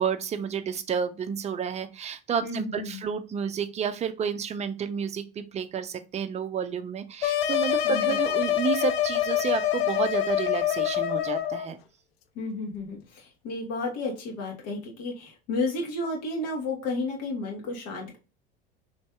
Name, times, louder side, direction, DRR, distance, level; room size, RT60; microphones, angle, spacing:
voice 1, 0.0-11.8, right 7 dB, 25° right, 10 dB, 0.5 m, -30 dB
voice 2, 2.4-3.0 7.8-8.2 12.3-18.2, left 2 dB, 60° left, -1 dB, 1.5 m, -32 dB
sound 1, 7.2-11.7, left 11 dB, 80° left, 0.5 m, -25 dB
3.2 x 2.7 x 3.4 m, 0.30 s
hypercardioid pair, 80°, 30 cm